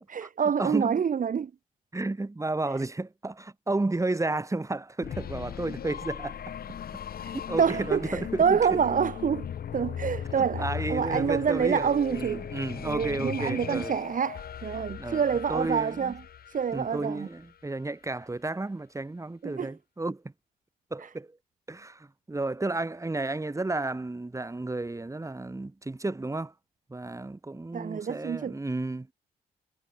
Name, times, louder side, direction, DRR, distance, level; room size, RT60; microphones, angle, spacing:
voice 1, 0.1-1.5 7.2-7.3 7.6-12.5 12.8-16.2 16.5-17.3 19.4-19.7 27.7-28.6, right 7 dB, 50° right, 1.3 m, -27 dB
voice 2, 0.6-1.0 1.9-6.8 7.5-8.8 10.4-13.9 15.0-15.2 15.5-16.2 16.7-20.3 20.9-21.4 21.7-26.5 26.9-29.1, right 2 dB, 15° right, 1.9 m, -32 dB
sound 1, 5.0-17.7, left 9 dB, 60° left, 2.4 m, -38 dB
supercardioid pair, 50°, 17 cm